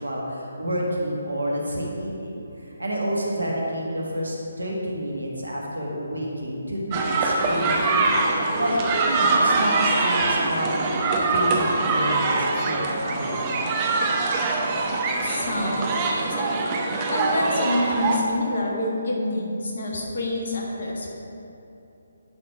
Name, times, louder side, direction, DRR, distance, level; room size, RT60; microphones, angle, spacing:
voice 1, 0.0-8.1 8.6-10.7 11.1-13.5, equal, 75° right, -2 dB, 1.6 m, -29 dB
sound 1, 6.9-18.2, right 3 dB, 25° right, 0.7 m, -23 dB
voice 2, 14.9-16.0 16.3-16.4 17.1-21.1, left 1 dB, 50° left, -2 dB, 1.6 m, -27 dB
10.5 x 4.2 x 4.8 m, 2.9 s
figure-of-eight pair, 145°, 0 cm